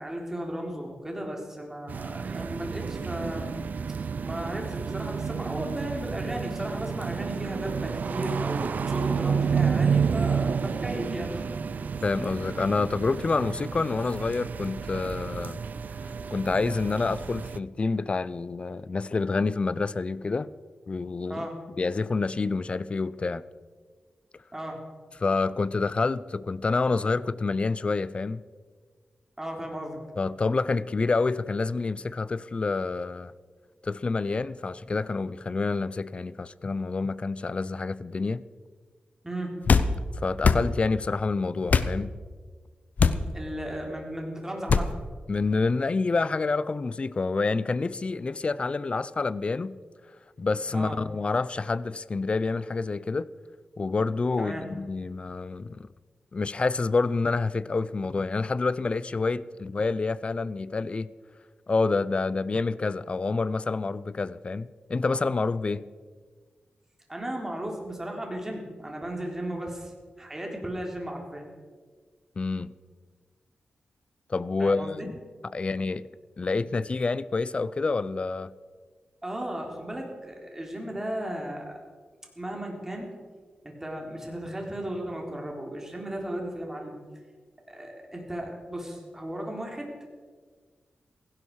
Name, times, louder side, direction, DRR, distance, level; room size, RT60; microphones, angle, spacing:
voice 1, 0.0-3.5 3.9-11.5 11.7-11.9 21.3-21.6 24.5-24.8 29.4-30.0 39.2-39.5 43.3-44.9 50.7-51.0 54.4-54.6 67.1-69.9 70.2-71.4 74.6-75.1 79.2-81.7 82.4-83.1 83.6-86.9 87.7-90.1, right 1 dB, 15° right, 3.7 m, -35 dB
sound 1, 1.9-17.6, right 6 dB, 65° right, 0.5 m, -30 dB
voice 2, 12.0-15.6 16.3-20.5 20.9-21.5 21.8-23.4 25.2-28.4 30.2-33.3 33.8-38.4 40.1-42.1 45.3-49.7 50.4-53.3 53.8-55.9 56.3-61.1 61.7-65.9 72.4-72.7 74.3-75.0 75.5-76.1 76.4-78.5, left 3 dB, 35° left, 0.5 m, -28 dB
sound 2, 39.7-39.9 40.4-40.6 41.7-41.9 43.0-43.2 44.7-44.9, left 5 dB, 60° left, 0.8 m, -20 dB
16.5 x 16.5 x 4.8 m
wide cardioid pair, 105°, 3 cm